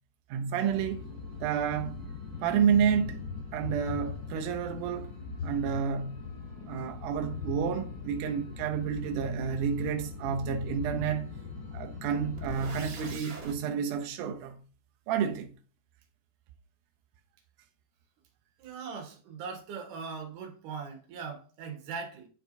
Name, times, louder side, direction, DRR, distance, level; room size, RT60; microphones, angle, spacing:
voice 1, 0.3-1.0 1.4-2.0 2.4-3.2 3.5-5.1 5.4-6.2 6.7-11.3 11.7-14.6 15.1-15.5, right 7 dB, 80° right, 1.9 m, -30 dB
sound 1, 0.7-13.2, left 4 dB, 85° left, 5.9 m, -40 dB
sound 2, 12.4-13.6, right 4 dB, 50° right, 2.5 m, -42 dB
voice 2, 18.6-22.3, right 5 dB, 65° right, 2.7 m, -40 dB
9.9 x 4.5 x 2.6 m
omnidirectional pair, 4.3 m